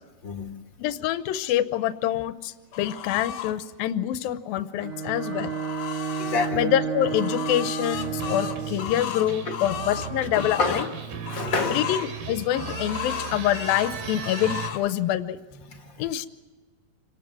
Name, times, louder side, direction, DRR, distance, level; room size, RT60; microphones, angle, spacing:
voice 1, 0.8-5.5 6.5-10.9 11.7-15.4 16.0-16.3, left 12 dB, 80° left, 12 dB, 2.6 m, -26 dB
sound 1, 2.7-3.5 4.9-6.5 7.0-10.9 11.2-12.1 12.5-13.9 14.2-14.8, left 10 dB, 60° left, 2.3 m, -35 dB
Bowed string instrument, 4.8-8.9, right 7 dB, 50° right, 2.8 m, -31 dB
voice 2, 6.2-6.6 9.5-9.6 10.3-10.9 11.3-11.8 15.7-16.0, left 4 dB, 40° left, 3 dB, 2.0 m, -28 dB
sound 2, 7.9-14.7, right 6 dB, 85° right, 4.2 m, -36 dB
27.0 x 19.0 x 7.7 m, 1.4 s
omnidirectional pair, 4.3 m